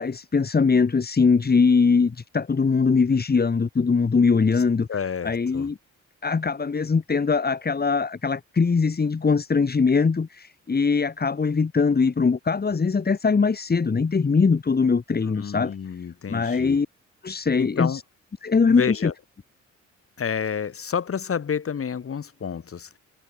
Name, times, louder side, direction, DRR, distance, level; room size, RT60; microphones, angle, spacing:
voice 1, 0.0-4.9 5.2-5.8 6.2-15.7 16.3-16.9 17.2-18.0 18.4-19.1, left 5 dB, 30° left, 4.4 m, -21 dB
voice 2, 4.9-5.7 15.4-16.8 17.6-18.0 18.7-19.1 20.2-22.9, left 7 dB, 50° left, 6.8 m, -29 dB
cardioid pair, 90°, 30 cm